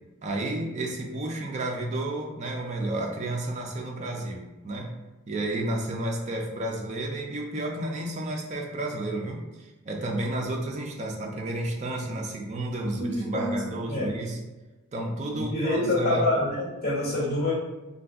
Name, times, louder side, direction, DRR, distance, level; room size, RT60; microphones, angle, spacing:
voice 1, 0.2-4.9 5.3-14.4 14.9-16.3, right 1 dB, 35° right, 0 dB, 0.4 m, -31 dB
voice 2, 12.9-13.5 13.9-14.2 15.3-17.5, left 2 dB, 50° left, -8 dB, 1.2 m, -26 dB
2.5 x 2.2 x 3.5 m, 1.1 s
head